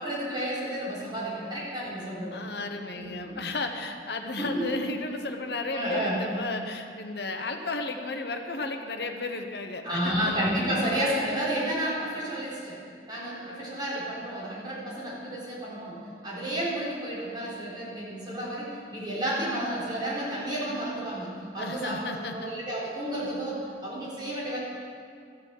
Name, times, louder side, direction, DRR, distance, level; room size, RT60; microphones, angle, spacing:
voice 1, 0.0-2.4 2.9-3.4 4.4-4.8 5.7-6.2 9.8-12.8 13.1-24.6, right 1 dB, 25° right, -7 dB, 3.9 m, -31 dB
voice 2, 2.3-10.3 10.6-10.7 21.6-22.5, left 3 dB, 65° left, 5 dB, 1.1 m, -34 dB
14.5 x 6.9 x 7.3 m, 2.3 s
head